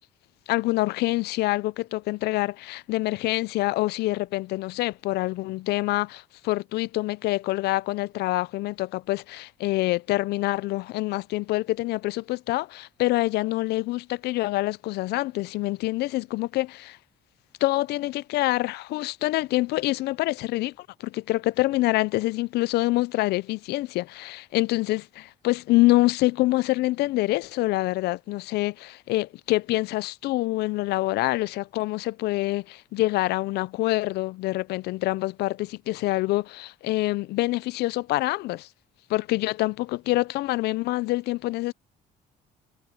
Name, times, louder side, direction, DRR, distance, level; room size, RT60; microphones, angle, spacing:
voice 1, 0.5-17.0 17.6-38.7 39.1-41.7, left 19 dB, 75° left, 0.5 m, -26 dB
cardioid pair, 110°, 17 cm